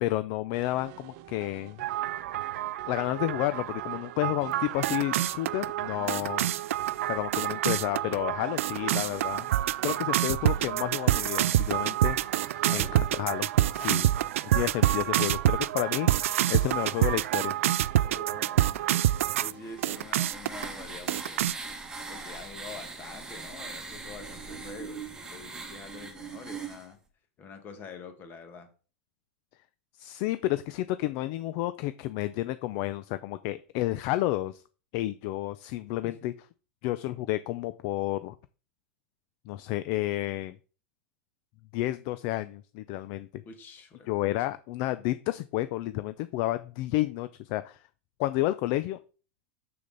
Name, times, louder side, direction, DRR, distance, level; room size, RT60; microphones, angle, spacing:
voice 1, 0.0-1.8 2.9-6.5 7.1-9.5 9.8-12.4 12.7-13.5 13.7-14.1 14.5-17.6 30.0-34.6 34.9-36.3 36.8-38.3 39.5-40.6 41.7-43.3 44.1-47.8 48.2-49.0, left 16 dB, 45° left, 14 dB, 0.4 m, -31 dB
sound 1, 0.5-20.0, right 13 dB, 45° right, 0.7 m, -49 dB
sound 2, 1.8-19.5 19.8-20.6 21.1-21.5, right 13 dB, 80° right, 0.4 m, -27 dB
voice 2, 6.0-6.4 12.5-13.0 13.8-14.1 18.0-21.5 22.1-27.0 27.4-28.7 36.0-36.3 43.5-44.4, left 4 dB, 30° left, 7 dB, 1.7 m, -46 dB
sound 3, 19.3-26.9, right 4 dB, 10° right, 1.5 m, -41 dB
6.9 x 6.6 x 4.0 m, 0.37 s
supercardioid pair, 145°, 7 cm